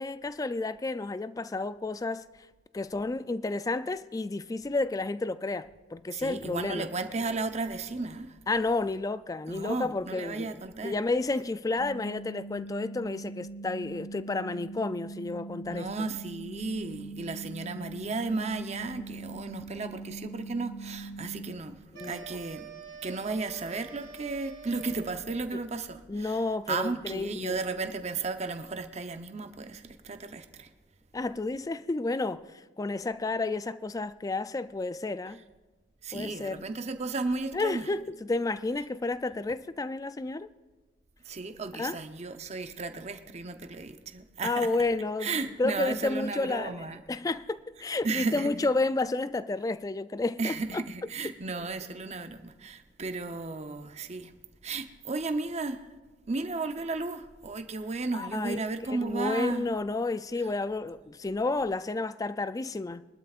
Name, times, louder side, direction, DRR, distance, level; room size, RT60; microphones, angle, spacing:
voice 1, 0.0-2.3 2.7-6.9 8.5-16.1 21.9-22.3 25.5-25.6 26.1-27.6 31.1-35.4 36.1-36.6 37.5-40.5 41.7-42.0 44.4-50.8 58.1-63.1, left 3 dB, 20° left, 0.3 m, -31 dB
voice 2, 6.1-8.3 9.5-10.9 15.7-21.7 22.0-22.6 23.0-26.4 26.7-30.7 36.0-37.8 41.3-44.7 45.2-47.0 48.0-48.7 50.4-54.3 54.6-55.8 56.3-59.6, right 3 dB, 35° right, 0.7 m, -34 dB
sound 1, 11.8-21.6, right 3 dB, 65° left, 0.9 m, -42 dB
sound 2, 21.9-25.4, right 4 dB, 90° right, 3.0 m, -46 dB
23.0 x 12.0 x 2.4 m
head